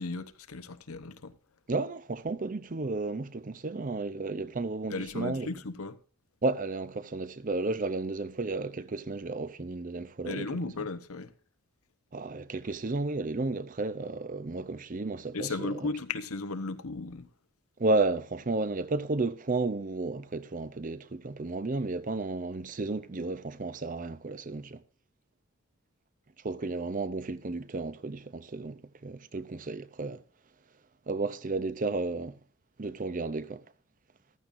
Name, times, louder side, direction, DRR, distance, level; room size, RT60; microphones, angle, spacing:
voice 1, 0.0-1.3 4.9-6.0 10.2-11.3 15.3-17.3, left 3 dB, 80° left, 1.0 m, -35 dB
voice 2, 1.7-5.5 6.4-10.5 12.1-15.9 17.8-24.8 26.4-30.2 31.1-32.4 32.8-33.6, right 3 dB, 35° right, 0.6 m, -32 dB
14.5 x 12.5 x 2.6 m
head